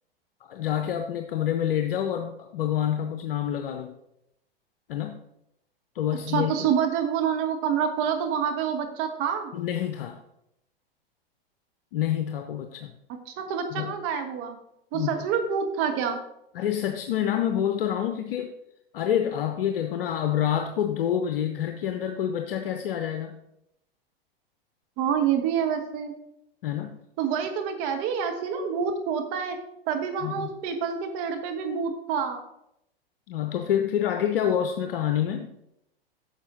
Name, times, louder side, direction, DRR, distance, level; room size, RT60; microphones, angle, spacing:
voice 1, 0.4-3.9 4.9-5.2 5.9-6.5 9.5-10.2 11.9-12.9 13.7-14.0 14.9-15.2 16.5-18.5 18.9-23.4 26.6-26.9 30.2-30.5 33.3-35.5, left 10 dB, 65° left, 6 dB, 0.8 m, -27 dB
voice 2, 6.3-9.5 13.3-14.6 14.9-16.2 25.0-26.1 27.2-29.6 29.9-32.4, right 7 dB, 45° right, 5 dB, 1.5 m, -27 dB
9.7 x 6.5 x 3.8 m, 0.81 s
hypercardioid pair, 105°, 30 cm